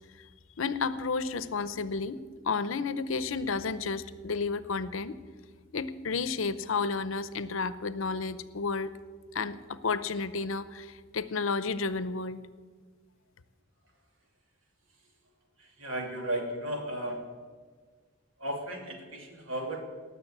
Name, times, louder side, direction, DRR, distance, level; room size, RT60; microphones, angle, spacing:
voice 1, 0.6-5.2 5.7-8.9 9.3-12.4, left 4 dB, 80° left, 14 dB, 0.7 m, -32 dB
voice 2, 15.6-17.3 18.4-19.8, right 1 dB, 85° right, 2 dB, 2.7 m, -35 dB
18.5 x 6.8 x 8.6 m, 1.5 s
head